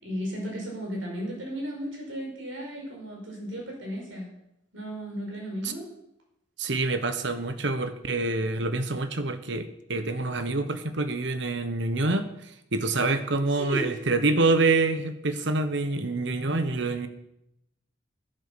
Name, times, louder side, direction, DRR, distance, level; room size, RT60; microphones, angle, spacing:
voice 1, 0.0-4.3 4.7-5.9 13.6-13.8, equal, 80° right, -1 dB, 5.2 m, -34 dB
voice 2, 6.6-17.1, right 3 dB, 65° right, 9 dB, 1.1 m, -26 dB
11.0 x 10.0 x 6.8 m, 0.83 s
head